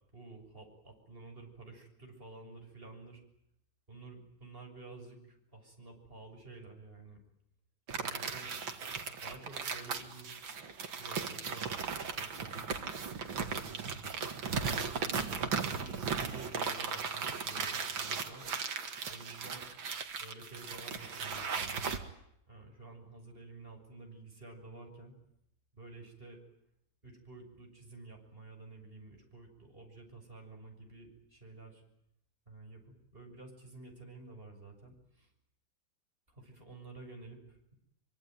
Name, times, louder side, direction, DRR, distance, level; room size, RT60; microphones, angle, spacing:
voice 1, 0.1-3.2 3.9-7.2 8.0-8.5 9.2-10.5 11.0-11.8 12.1-12.7 13.5-14.1 14.8-18.5 19.1-19.7 20.2-22.0 22.5-25.2 25.7-26.4 27.0-31.8 32.5-35.3 36.4-37.7, right 3 dB, 25° right, 3 dB, 6.9 m, -51 dB
kneading paper, 7.9-22.0, right 5 dB, 70° right, 2.7 m, -37 dB
25.0 x 24.0 x 9.2 m, 0.78 s
omnidirectional pair, 2.2 m